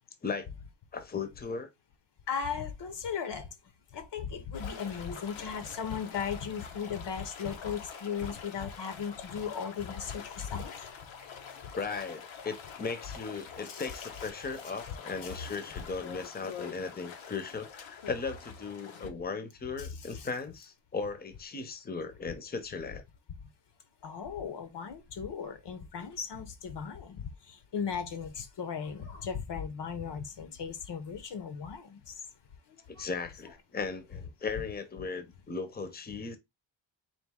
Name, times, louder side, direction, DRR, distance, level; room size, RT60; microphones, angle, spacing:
voice 1, 0.9-1.7 11.8-23.0 32.9-36.4, left 4 dB, 20° left, 0.7 m, -37 dB
voice 2, 2.3-3.5 3.9-10.7 13.7-13.9 15.2-15.3 19.8-20.3 24.0-32.2 32.8-33.1, left 6 dB, 65° left, 0.8 m, -37 dB
sound 1, 4.5-19.1, left 7 dB, 90° left, 0.9 m, -46 dB
4.2 x 2.7 x 3.5 m
wide cardioid pair, 105°, 46 cm